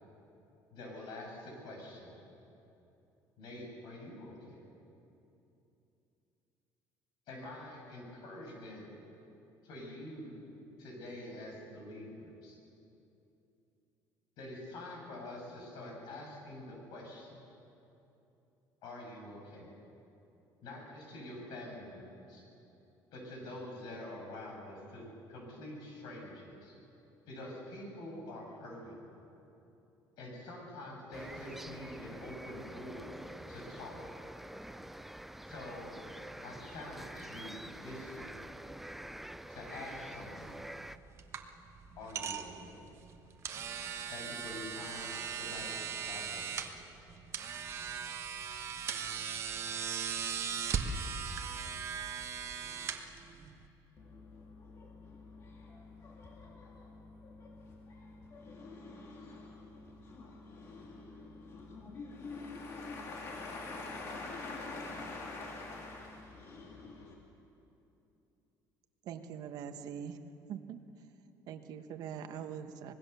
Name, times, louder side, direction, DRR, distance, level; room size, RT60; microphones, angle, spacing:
voice 1, 0.7-2.1 3.4-4.6 7.3-8.9 9.6-10.5 10.8-12.6 14.4-17.5 18.8-19.7 20.6-22.4 23.1-25.0 25.3-26.7 27.3-29.1 30.2-33.1 33.5-34.0 35.5-36.0 36.4-38.3 39.5-40.5 42.0-42.8 44.1-46.7, left 1 dB, 70° left, 0 dB, 7.1 m, -46 dB
sound 1, 31.1-41.0, right 1 dB, 5° right, 0.4 m, -47 dB
sound 2, 40.4-53.7, right 7 dB, 35° right, 1.3 m, -39 dB
voice 2, 54.0-67.2, left 3 dB, 40° left, 0 dB, 2.1 m, -46 dB
voice 3, 69.0-70.2 70.5-71.0 71.5-72.9, right 8 dB, 60° right, 7 dB, 1.3 m, -43 dB
25.0 x 20.0 x 6.9 m, 2.9 s
cardioid pair, 160°, 8 cm